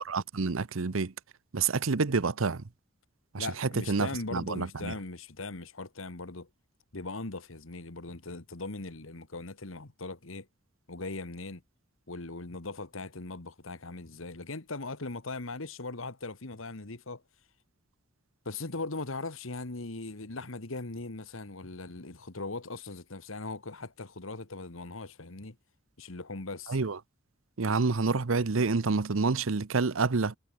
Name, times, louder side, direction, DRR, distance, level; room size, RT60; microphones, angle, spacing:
voice 1, 0.0-1.1 1.5-2.6 3.3-4.9 26.7-27.0 27.6-30.4, right 4 dB, 75° right, 0.8 m, -28 dB
voice 2, 3.4-6.5 6.9-10.5 10.9-11.6 12.1-17.2 18.5-25.6 26.0-26.8, left 3 dB, 75° left, 1.8 m, -39 dB
head